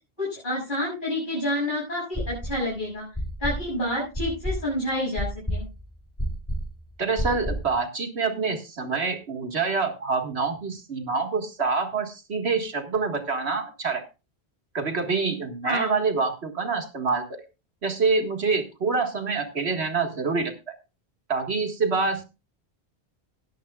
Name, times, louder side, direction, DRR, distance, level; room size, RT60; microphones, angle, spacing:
voice 1, 0.2-3.1 3.4-5.7 15.6-15.9, left 1 dB, 50° left, -5 dB, 7.2 m, -28 dB
sound 1, 2.1-2.7 3.1-7.8, equal, 15° left, 2.8 m, -30 dB
voice 2, 7.0-14.0 14.7-17.4 17.8-20.5 21.3-22.2, right 4 dB, 90° right, 5 dB, 2.1 m, -26 dB
17.0 x 11.0 x 2.4 m, 0.28 s
omnidirectional pair, 1.1 m